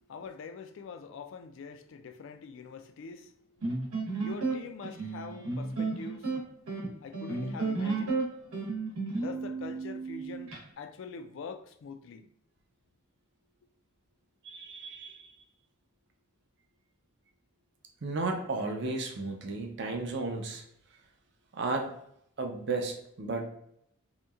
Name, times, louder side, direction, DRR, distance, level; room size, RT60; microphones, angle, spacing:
voice 1, 0.1-6.3 7.0-8.3 9.2-12.3, left 5 dB, 60° left, 0.3 m, -44 dB
sound 1, 3.6-10.6, right 3 dB, 85° right, 1.0 m, -33 dB
voice 2, 14.4-15.3 18.0-20.6 21.5-21.9 22.4-23.6, right 3 dB, 55° right, 0.5 m, -34 dB
2.9 x 2.6 x 2.3 m
head